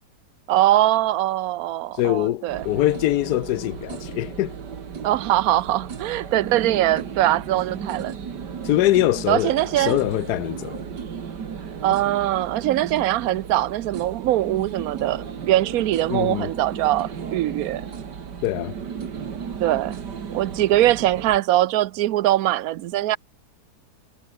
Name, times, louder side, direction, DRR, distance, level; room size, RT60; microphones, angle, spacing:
voice 1, 0.5-2.7 5.0-8.2 9.3-10.0 11.8-17.8 19.6-20.0 20.3-23.2, right 14 dB, 70° right, 1.0 m, -22 dB
voice 2, 2.0-4.5 8.6-10.8 16.1-16.5 18.4-18.7, left 15 dB, 75° left, 1.1 m, -23 dB
sound 1, 2.5-21.4, right 6 dB, 85° right, 2.5 m, -35 dB
omnidirectional pair, 1.8 m